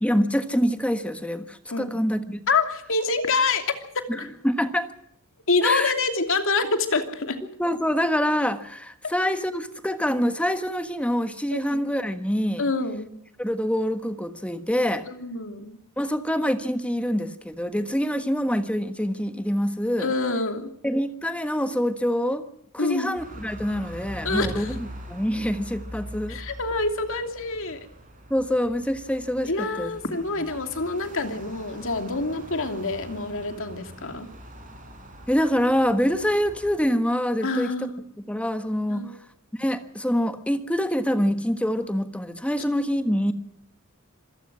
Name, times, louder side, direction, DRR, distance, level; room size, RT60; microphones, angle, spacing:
voice 1, 0.0-2.4 4.1-4.9 5.6-5.9 7.6-12.7 13.4-15.1 16.0-20.1 20.8-22.5 22.7-26.4 28.3-30.4 35.3-37.9 38.2-39.2 39.6-43.3, equal, 5° left, 9 dB, 1.4 m, -25 dB
voice 2, 2.5-3.7 5.5-7.4 11.5-11.8 12.6-13.1 15.1-15.8 20.0-20.7 22.8-23.1 24.2-24.7 26.3-27.9 29.4-34.3 37.4-38.0 38.9-39.1, left 3 dB, 65° left, 6 dB, 2.8 m, -26 dB
sound 1, 23.2-36.8, equal, 40° right, 5.7 m, -42 dB
26.5 x 17.5 x 6.2 m, 0.71 s
head